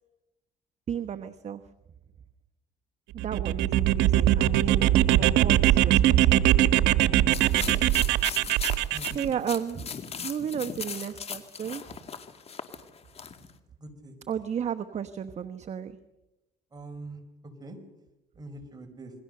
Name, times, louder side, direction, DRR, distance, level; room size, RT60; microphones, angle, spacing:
voice 1, 0.9-1.6 3.2-6.7 9.0-9.8 10.2-11.8 14.3-16.0, right 8 dB, 40° right, 8 dB, 1.1 m, -34 dB
sound 1, 3.2-9.3, right 13 dB, 90° right, 1.2 m, -21 dB
sound 2, 7.3-13.5, left 6 dB, 35° left, 2.3 m, -38 dB
voice 2, 13.8-14.1 16.7-17.2 17.6-17.8 18.4-19.1, right 2 dB, 25° right, 4 dB, 5.5 m, -43 dB
28.0 x 22.0 x 6.7 m, 0.97 s
cardioid pair, 110°, 17 cm